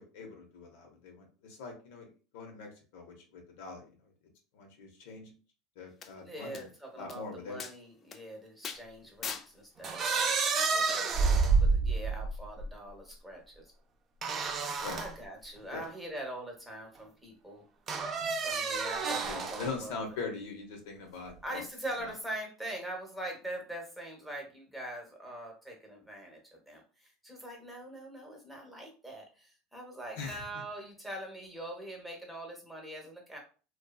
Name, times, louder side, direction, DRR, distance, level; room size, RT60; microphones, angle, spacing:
voice 1, 0.0-2.1 2.3-4.1 4.5-5.3 5.8-6.7 7.0-7.6 14.8-15.0 15.7-15.9 19.3-21.6 22.0-22.1 30.2-30.4, left 4 dB, 75° left, 2 dB, 0.8 m, -42 dB
sound 1, 6.0-6.1 6.5-6.6 7.1-7.2 7.6-7.7 8.1-8.2 8.6-8.8 9.2-9.5 10.9-11.0, left 7 dB, 35° left, 0.3 m, -39 dB
voice 2, 6.2-10.3 10.7-11.1 11.6-13.7 14.9-17.6 18.4-19.9 21.4-33.4, right 1 dB, 5° right, 0 dB, 0.9 m, -43 dB
sound 2, 9.8-12.7 14.2-15.1 15.8-15.9 17.9-19.8, right 4 dB, 35° right, 0.4 m, -29 dB
2.6 x 2.3 x 2.3 m, 0.37 s
supercardioid pair, 115°, 0 cm